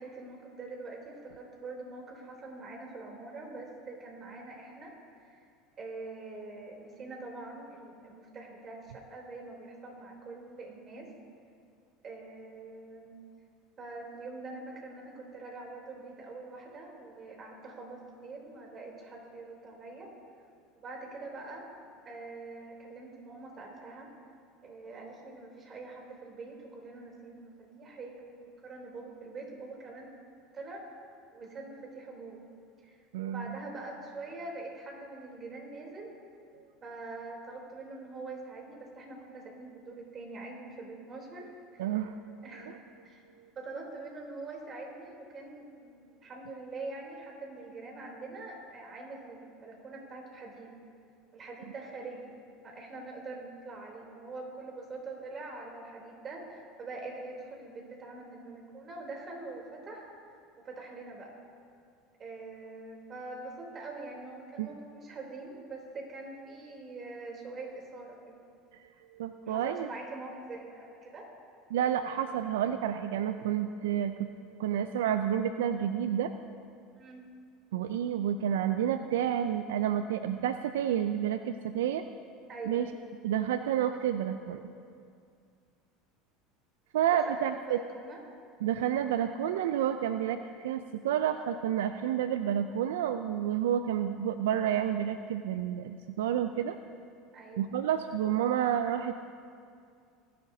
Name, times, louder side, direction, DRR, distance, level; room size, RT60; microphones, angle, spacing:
voice 1, 0.0-5.4 5.8-11.1 12.0-13.2 13.8-20.1 20.8-24.1 24.6-30.1 30.5-30.8 31.3-32.4 32.8-36.1 36.8-41.9 42.4-42.8 43.0-50.7 51.3-52.3 52.6-60.1 60.6-61.3 62.2-68.3 69.4-71.3 77.0-77.2 82.5-82.8 87.1-87.3 87.7-88.2 97.3-97.6, right 3 dB, 40° right, 0 dB, 3.4 m, -44 dB
voice 2, 33.1-33.5 36.5-36.6 41.8-42.2 42.7-42.8 64.6-64.7 69.1-69.9 71.7-74.3 74.6-76.3 77.7-82.0 82.7-82.9 83.2-84.7 86.9-87.8 88.6-96.8 97.6-99.4, right 10 dB, 80° right, 9 dB, 0.4 m, -30 dB
20.0 x 11.0 x 2.8 m, 2.3 s
hypercardioid pair, 90°, 0 cm